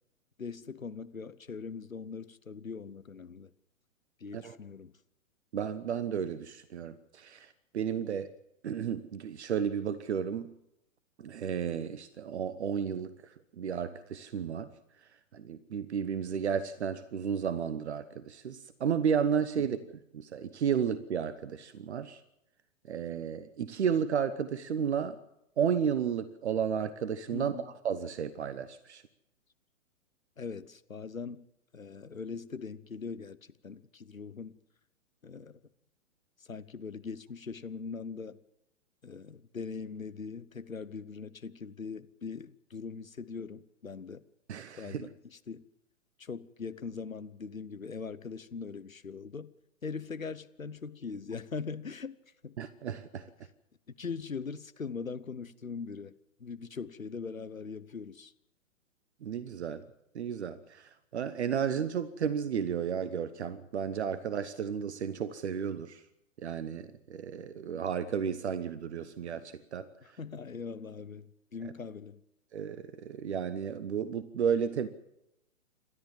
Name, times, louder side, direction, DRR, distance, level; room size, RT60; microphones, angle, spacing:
voice 1, 0.4-3.5 4.2-4.9 19.6-19.8 27.3-27.7 30.4-31.4 31.7-33.4 33.6-34.5 35.2-35.6 36.4-38.4 39.0-44.2 44.8-45.6 46.2-49.5 49.8-52.2 52.4-52.6 54.0-56.1 56.4-58.3 70.0-72.2, left 5 dB, 85° left, 1.1 m, -41 dB
voice 2, 5.5-8.3 8.6-10.5 11.2-14.7 15.3-19.8 20.1-22.2 22.9-25.2 25.6-29.0 44.5-45.1 52.6-53.3 59.2-59.8 60.1-66.0 66.4-69.9 72.5-74.9, right 7 dB, 55° right, 1.1 m, -33 dB
28.0 x 13.0 x 7.4 m
figure-of-eight pair, 120°, 40 cm